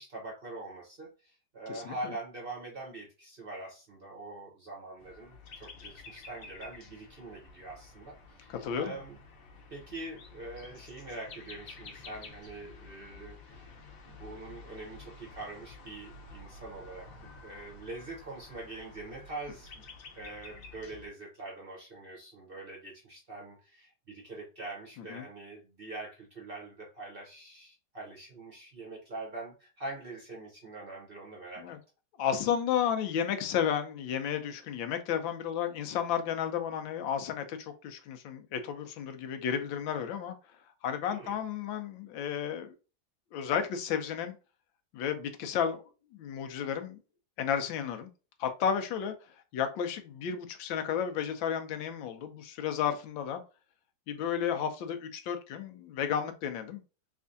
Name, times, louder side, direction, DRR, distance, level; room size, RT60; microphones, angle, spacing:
voice 1, 0.0-9.2 9.7-13.8 14.0-19.7 20.1-31.8 41.1-41.4, right 2 dB, 40° right, 0.8 m, -44 dB
sound 1, 5.0-21.1, left 3 dB, 55° left, 1.1 m, -51 dB
voice 2, 8.5-9.0 25.1-25.2 31.6-31.8 32.2-40.3 40.8-42.7 43.3-44.3 44.9-45.8 46.1-47.0 47.4-48.1 48.4-49.1 49.5-53.4 54.1-56.8, left 8 dB, 90° left, 1.4 m, -32 dB
3.5 x 3.3 x 2.6 m
omnidirectional pair, 2.0 m